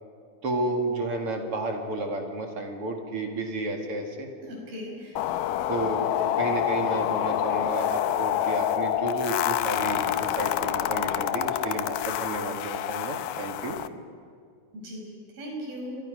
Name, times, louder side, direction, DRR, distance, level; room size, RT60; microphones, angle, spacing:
voice 1, 0.4-4.3 5.7-6.1 6.3-13.8, right 2 dB, 45° right, 2 dB, 2.7 m, -31 dB
voice 2, 4.4-5.2 14.7-16.0, equal, 75° right, -1 dB, 7.2 m, -38 dB
sound 1, 5.2-13.9, left 11 dB, 75° left, 2.2 m, -27 dB
29.5 x 23.0 x 5.2 m, 2.2 s
omnidirectional pair, 4.2 m